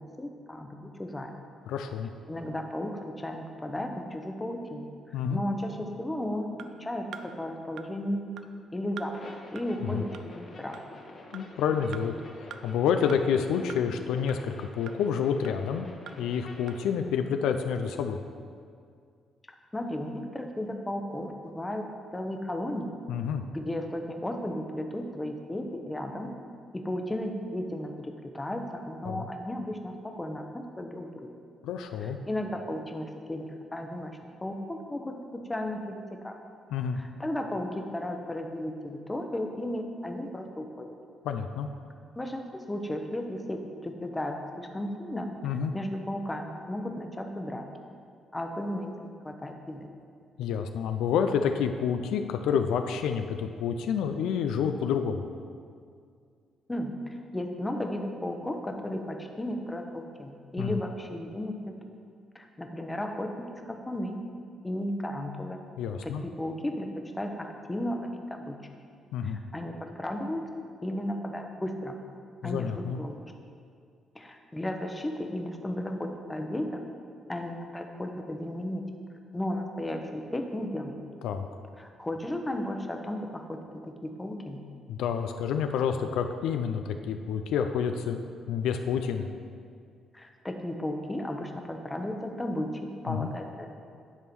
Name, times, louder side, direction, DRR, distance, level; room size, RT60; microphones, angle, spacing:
voice 1, 0.0-1.3 2.3-4.9 5.3-8.3 8.7-9.1 9.5-10.1 10.4-10.8 19.7-21.9 22.1-22.9 23.5-26.3 26.7-31.1 32.0-34.1 34.4-36.3 37.0-40.9 42.2-45.3 45.7-47.7 48.3-49.9 56.7-56.9 57.3-61.7 62.3-64.2 64.6-65.6 66.0-66.9 67.1-68.6 69.2-70.4 70.8-71.9 72.4-72.7 73.0-73.2 74.1-76.8 77.3-78.8 79.3-80.9 81.8-84.6 90.1-93.7, left 1 dB, 15° left, 4 dB, 0.8 m, -34 dB
voice 2, 1.7-2.1 5.1-5.4 9.8-10.0 11.3-12.1 12.6-15.9 16.2-18.2 23.1-23.4 29.0-29.3 31.6-32.2 36.7-37.0 41.2-41.7 45.4-45.7 50.4-55.2 60.6-60.8 65.8-66.2 69.1-69.4 72.4-73.0 81.2-81.5 84.9-88.2 88.5-89.3 93.1-93.3, left 7 dB, 85° left, 7 dB, 0.4 m, -28 dB
sound 1, 6.6-6.7 7.1-7.3 7.8-7.9 8.4-8.5 9.0-9.1 9.6-9.7 10.1-10.2 10.7-10.8 11.3-11.4 11.9-12.0 12.5-12.6 13.1-13.2 13.7-13.8 14.3-14.4 14.9-15.0 15.4-15.5 16.1-16.2 16.7-16.8, right 8 dB, 75° right, 0.4 m, -43 dB
sound 2, 9.1-16.9, left 2 dB, 50° left, 1.2 m, -47 dB
9.7 x 3.6 x 6.0 m, 2.2 s
cardioid pair, 90°, 0 cm